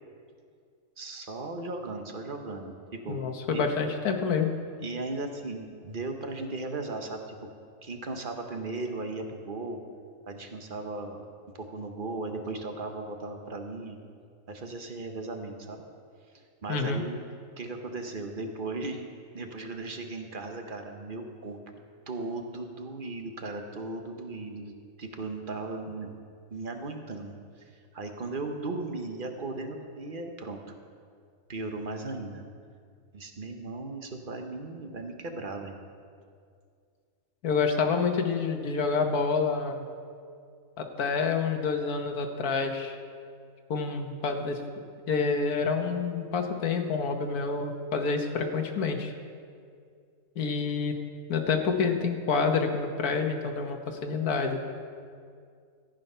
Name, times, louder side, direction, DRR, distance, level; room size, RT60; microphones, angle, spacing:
voice 1, 1.0-3.2 3.5-3.7 4.8-7.5 7.8-9.8 10.3-11.2 11.6-14.0 14.5-15.8 16.3-17.2 17.6-19.0 19.3-24.7 25.0-26.1 26.5-30.6 31.5-32.4 33.1-35.8, right 2 dB, 40° right, 4 dB, 1.1 m, -37 dB
voice 2, 3.1-4.5 16.7-17.0 37.4-39.8 40.8-43.0 43.7-44.6 45.1-49.1 50.4-50.9 51.3-54.6, left 5 dB, 85° left, 5 dB, 1.6 m, -28 dB
14.5 x 9.3 x 5.6 m, 2.2 s
omnidirectional pair, 1.6 m